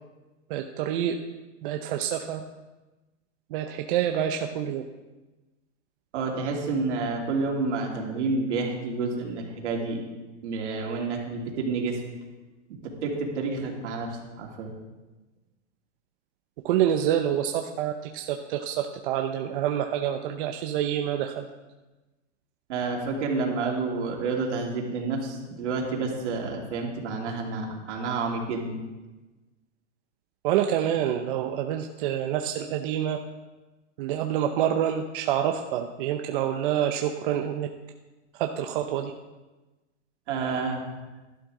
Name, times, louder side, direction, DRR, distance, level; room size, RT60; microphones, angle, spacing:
voice 1, 0.5-1.2 1.6-2.4 3.5-4.8 16.6-21.5 30.4-33.2 34.0-37.7 38.3-39.1, right 10 dB, 45° right, 4 dB, 0.7 m, -27 dB
voice 2, 6.1-10.0 10.4-12.0 12.8-14.7 22.7-28.8 40.3-40.8, right 3 dB, 75° right, 0 dB, 2.9 m, -29 dB
12.0 x 11.0 x 3.8 m, 1.1 s
supercardioid pair, 155°, 36 cm